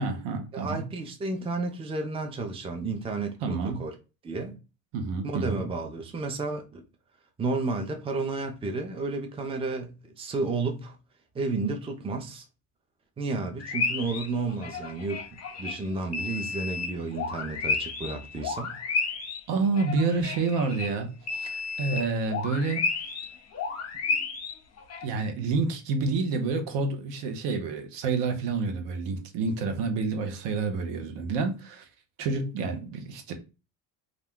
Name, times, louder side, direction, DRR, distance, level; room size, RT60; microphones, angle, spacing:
voice 1, 0.0-0.8 3.4-3.8 4.9-5.6 19.5-21.5 21.8-22.8 25.0-31.9 32.2-33.3, right 4 dB, 65° right, 0.8 m, -28 dB
voice 2, 0.5-3.9 4.2-4.6 5.2-6.8 7.4-11.0 11.3-12.4 13.2-15.2 15.6-18.7, right 3 dB, 15° right, 0.5 m, -32 dB
sound 1, 13.6-15.8 16.1-20.9 21.2-25.0, left 4 dB, 35° left, 0.7 m, -32 dB
2.4 x 2.2 x 3.5 m
supercardioid pair, 75°, 45 cm